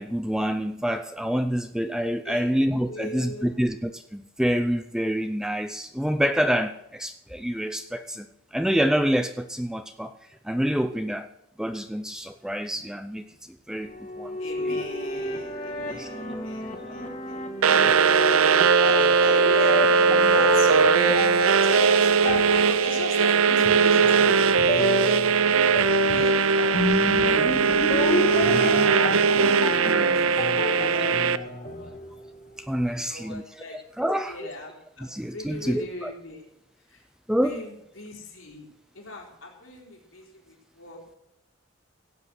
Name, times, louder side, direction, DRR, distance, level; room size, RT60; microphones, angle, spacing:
voice 1, 0.0-8.3 8.5-10.1 10.4-11.3 11.6-13.2 13.7-14.8 15.9-16.1 17.7-18.1 28.5-29.0 32.6-33.4 34.0-34.4 35.0-36.1 37.3-37.6, equal, 5° right, 8 dB, 0.5 m, -27 dB
voice 2, 2.2-2.6 2.9-3.7 14.4-18.2 18.5-21.2 21.6-25.1 26.1-27.6 28.3-31.9 32.9-36.4 36.9-37.0 37.4-38.7 38.9-41.2, left 2 dB, 80° left, -1 dB, 4.1 m, -38 dB
sound 1, 13.8-32.4, left 1 dB, 40° left, 1.6 m, -31 dB
sound 2, 17.6-31.4, right 5 dB, 85° right, 0.6 m, -20 dB
16.5 x 8.3 x 6.2 m, 0.82 s
head